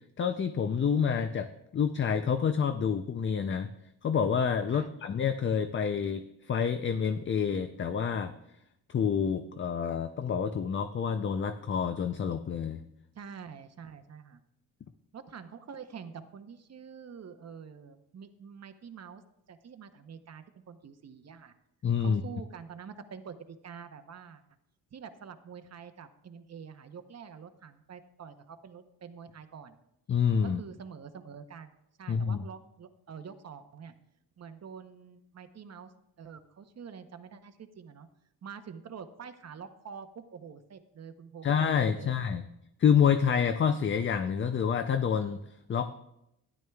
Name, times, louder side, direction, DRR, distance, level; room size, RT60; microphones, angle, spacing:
voice 1, 0.2-3.7 4.0-8.3 8.9-12.8 21.8-22.2 30.1-30.6 32.1-32.4 41.4-42.4 42.8-45.4 45.7-45.9, left 7 dB, 35° left, 10 dB, 0.4 m, -28 dB
voice 2, 13.1-14.4 15.1-19.2 19.5-21.5 22.0-24.4 24.9-29.8 30.4-33.9 34.4-35.9 36.2-38.1 38.4-41.5 41.9-42.2, right 6 dB, 45° right, 9 dB, 0.8 m, -46 dB
12.5 x 10.5 x 2.3 m, 0.83 s
cardioid pair, 105°, 37 cm